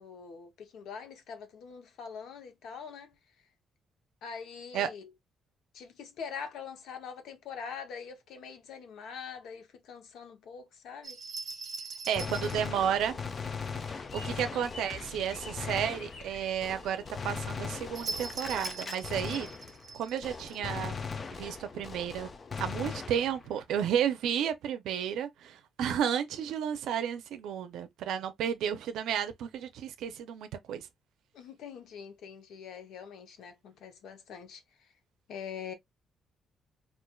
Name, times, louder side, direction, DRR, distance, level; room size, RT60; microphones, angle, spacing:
voice 1, 0.0-3.2 4.2-5.1 5.7-11.2 12.1-12.8 14.2-14.5 31.3-34.9 35.3-35.7, left 6 dB, 70° left, 0.8 m, -44 dB
sound 1, 11.0-12.7 17.9-20.6, right 4 dB, 45° right, 1.1 m, -41 dB
voice 2, 12.1-13.2 13.9-19.5 19.9-21.0 21.3-22.3 22.6-30.9, right 9 dB, 90° right, 0.5 m, -32 dB
Gunshot gunfire, 12.2-20.0 20.2-23.6, left 5 dB, 25° left, 0.3 m, -39 dB
sound 2, 14.1-19.6, left 2 dB, 90° left, 1.1 m, -53 dB
4.4 x 2.4 x 2.3 m
cardioid pair, 165°, 0 cm